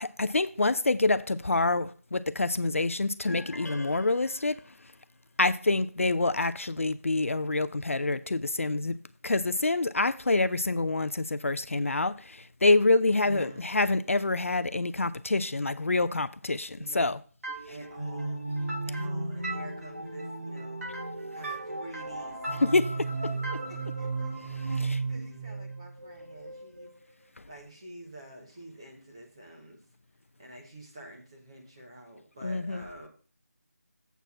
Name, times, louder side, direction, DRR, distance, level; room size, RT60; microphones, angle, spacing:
voice 1, 0.0-4.6 5.4-9.0 9.2-17.2 22.6-22.9 24.8-25.0 32.4-32.8, left 2 dB, 60° left, 0.5 m, -26 dB
sound 1, 3.3-5.0, left 2 dB, 80° left, 0.9 m, -45 dB
voice 2, 13.2-13.7 16.7-17.1 17.7-18.5 18.8-20.9 21.3-23.3 23.7-24.4 24.7-29.8 30.4-33.1, right 1 dB, 20° right, 1.4 m, -48 dB
sound 2, 17.4-27.0, right 2 dB, 65° right, 3.1 m, -34 dB
8.0 x 4.5 x 7.1 m
figure-of-eight pair, 180°, 8 cm